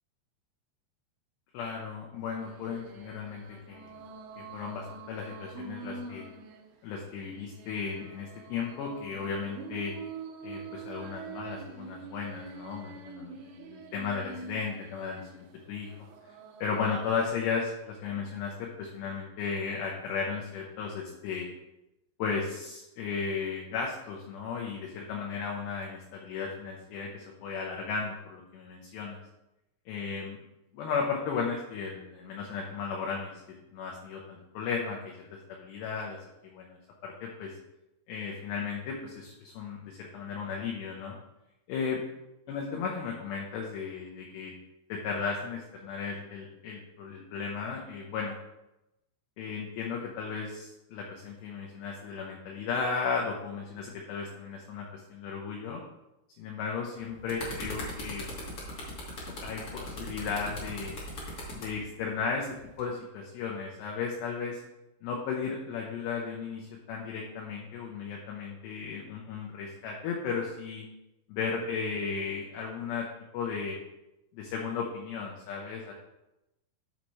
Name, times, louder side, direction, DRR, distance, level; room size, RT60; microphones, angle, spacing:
voice 1, 1.5-4.0 4.4-6.3 6.8-9.9 10.4-15.9 16.6-21.5 22.2-29.2 29.9-30.4 30.7-36.2 36.4-37.5 38.1-41.2 41.7-42.0 42.5-44.5 44.9-48.4 49.4-55.8 56.4-58.2 59.4-60.9 61.5-62.5 62.8-64.6 65.0-70.9 71.3-73.1 73.3-73.8 74.3-75.9, left 5 dB, 75° left, -1 dB, 2.7 m, -35 dB
sound 1, 2.4-17.4, right 4 dB, 80° right, 2.4 m, -46 dB
sound 2, 57.0-61.7 62.6-62.8, left 1 dB, 50° left, 1.8 m, -39 dB
11.5 x 5.8 x 3.1 m, 0.94 s
omnidirectional pair, 5.5 m